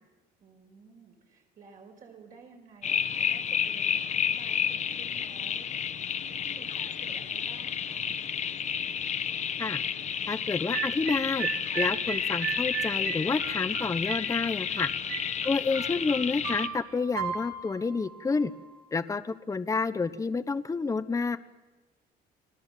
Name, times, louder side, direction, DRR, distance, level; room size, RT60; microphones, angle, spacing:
voice 1, 0.4-5.7 6.2-8.1 15.8-16.1, right 4 dB, 50° right, 1 dB, 5.4 m, -53 dB
sound 1, 2.8-16.7, left 8 dB, 45° left, 1.1 m, -31 dB
voice 2, 10.3-11.5 11.7-14.9 15.4-18.5 18.9-21.4, left 4 dB, 20° left, 11 dB, 0.9 m, -29 dB
sound 2, 10.7-18.7, right 7 dB, 70° right, 5.1 m, -37 dB
30.0 x 19.5 x 7.5 m, 1.2 s
cardioid pair, 110°, 17 cm